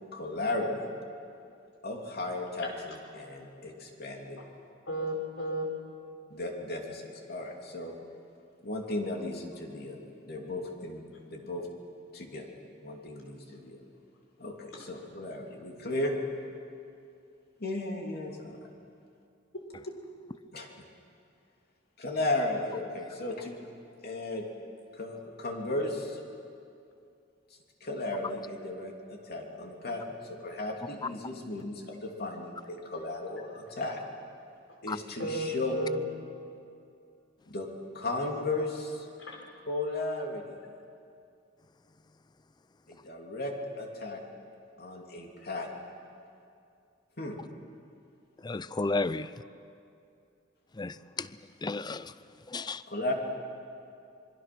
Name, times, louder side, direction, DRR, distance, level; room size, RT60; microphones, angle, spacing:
voice 1, 0.1-0.8 1.8-4.4 6.3-7.9 8.6-11.0 11.3-11.7 12.1-12.5 12.8-13.8 14.4-16.1 17.6-18.7 20.5-20.7 22.0-23.5 24.0-24.4 24.9-26.2 27.8-34.0 34.8-35.9 37.5-37.7 37.9-39.1 39.7-40.6 42.9-44.2 44.8-45.7 47.2-47.4 52.9-53.1, left 2 dB, 55° left, 1 dB, 3.0 m, -35 dB
voice 2, 4.9-5.7 14.7-14.9 19.5-20.0 35.2-36.0 39.2-39.4 52.6-52.7, right 1 dB, 75° left, 0 dB, 4.9 m, -34 dB
voice 3, 48.4-49.3 50.8-51.3 51.6-52.1 52.5-52.8, left 3 dB, 20° left, 16 dB, 0.5 m, -32 dB
26.5 x 23.0 x 6.2 m, 2.5 s
head